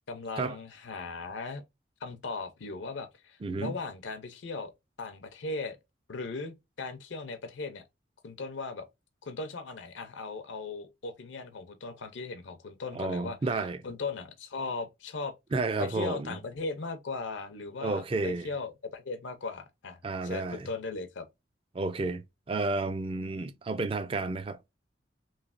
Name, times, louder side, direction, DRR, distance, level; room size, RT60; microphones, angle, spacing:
voice 1, 0.1-1.6 2.0-4.7 5.0-5.8 6.1-7.8 8.2-8.9 9.2-13.4 13.8-15.3 15.8-21.3, left 3 dB, 75° left, 0.5 m, -38 dB
voice 2, 3.4-3.8 12.9-13.8 15.5-16.4 17.8-18.5 20.0-20.7 21.7-24.6, right 3 dB, 30° right, 0.3 m, -31 dB
3.1 x 2.7 x 2.4 m
head